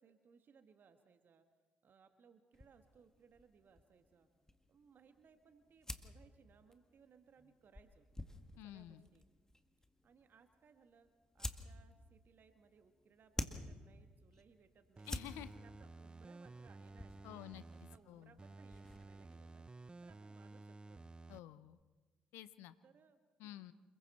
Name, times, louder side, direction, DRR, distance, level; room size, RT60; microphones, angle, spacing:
voice 1, 0.0-1.5 1.8-4.3 4.7-8.1 8.6-9.2 10.0-11.1 11.3-15.2 15.6-19.7 20.0-21.0 22.8-23.7, right 6 dB, 50° right, 7 dB, 1.5 m, -67 dB
sound 1, 2.5-19.4, left 1 dB, 15° left, 1.9 m, -51 dB
voice 2, 8.6-9.0 15.1-15.5 17.2-17.6 18.1-18.4 21.3-21.8 22.3-22.7 23.4-23.7, left 14 dB, 70° left, 14 dB, 0.7 m, -51 dB
sound 2, 15.0-18.0 18.4-21.4 21.8-21.9, right 3 dB, 20° right, 0.8 m, -54 dB
28.0 x 21.5 x 4.3 m, 1.3 s
hypercardioid pair, 45°, 4 cm